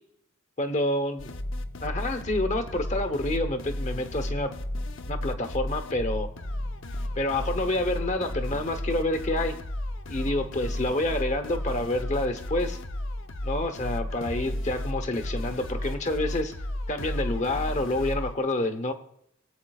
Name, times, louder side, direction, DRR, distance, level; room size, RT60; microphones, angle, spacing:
voice 1, 0.6-1.3 1.8-4.5 5.0-6.3 7.2-9.6 10.1-12.8 13.4-16.5 16.9-18.9, left 1 dB, 35° left, 8 dB, 1.0 m, -28 dB
sound 1, 1.2-18.3, left 1 dB, 60° left, 0.7 m, -33 dB
sound 2, 2.0-13.9, left 1 dB, 85° left, 5.0 m, -50 dB
19.0 x 8.5 x 2.4 m, 0.74 s
head